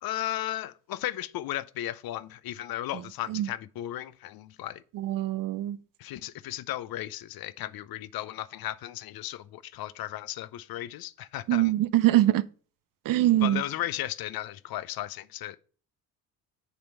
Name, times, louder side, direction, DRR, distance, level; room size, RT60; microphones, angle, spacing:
voice 1, 0.0-4.8 6.0-11.7 13.4-15.6, left 13 dB, 55° left, 0.7 m, -35 dB
voice 2, 5.0-5.8 11.5-12.4 13.1-13.6, right 14 dB, 50° right, 0.6 m, -23 dB
6.8 x 4.4 x 6.4 m
supercardioid pair, 70°, 43 cm